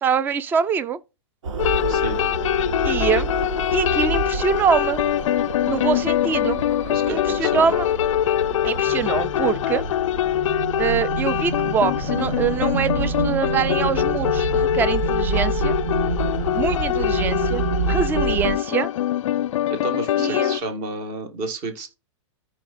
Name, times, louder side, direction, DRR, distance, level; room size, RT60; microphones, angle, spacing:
voice 1, 0.0-1.0 2.8-3.3 3.7-5.1 5.6-6.6 7.1-7.9 8.6-9.8 10.8-15.8 16.5-18.9 20.2-20.6, right 6 dB, 10° right, 0.4 m, -24 dB
sound 1, 1.4-18.5, right 4 dB, 75° right, 1.7 m, -28 dB
sound 2, 1.6-20.6, left 12 dB, 80° left, 0.4 m, -23 dB
voice 2, 1.9-2.2 6.9-7.7 19.7-21.9, right 3 dB, 35° right, 2.0 m, -31 dB
14.0 x 4.9 x 2.6 m
hypercardioid pair, 155°, 16 cm